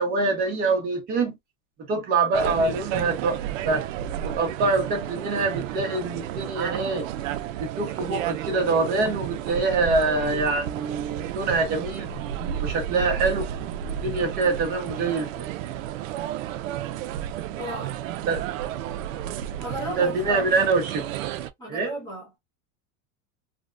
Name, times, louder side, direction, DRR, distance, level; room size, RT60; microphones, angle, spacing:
voice 1, 0.0-1.4 1.9-3.9 4.2-7.1 7.6-12.1 12.5-13.5 13.8-15.5 18.3-18.4 20.0-21.0 21.7-21.9, right 3 dB, 20° right, 0.8 m, -25 dB
sound 1, 2.3-21.5, right 11 dB, 70° right, 0.5 m, -32 dB
voice 2, 17.6-18.0 19.6-20.7 21.6-22.4, equal, 10° left, 1.0 m, -35 dB
3.4 x 2.1 x 2.5 m
supercardioid pair, 170°, 41 cm